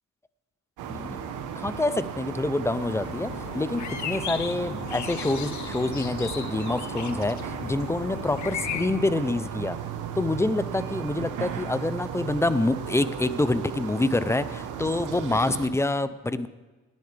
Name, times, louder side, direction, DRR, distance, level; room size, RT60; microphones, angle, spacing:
sound 1, 0.8-15.7, right 8 dB, 85° right, 1.2 m, -35 dB
voice 1, 0.9-1.2 1.6-9.8 10.2-16.5, left 2 dB, 10° left, 14 dB, 0.5 m, -27 dB
sound 2, 2.7-8.8, left 9 dB, 70° left, 0.9 m, -36 dB
18.5 x 10.5 x 3.4 m, 1.3 s
cardioid pair, 90°, 30 cm